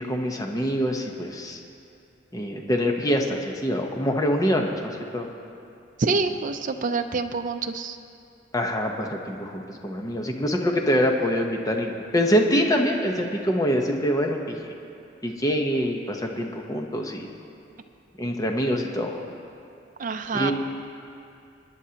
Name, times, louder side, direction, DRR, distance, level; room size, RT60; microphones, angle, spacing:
voice 1, 0.0-1.6 2.3-5.3 8.5-14.7 15.2-17.3 18.2-19.1 20.3-20.5, equal, 20° left, 2 dB, 0.9 m, -25 dB
voice 2, 6.0-8.0 20.0-20.5, right 4 dB, 45° right, 6 dB, 0.5 m, -26 dB
28.5 x 9.7 x 2.9 m, 2.5 s
head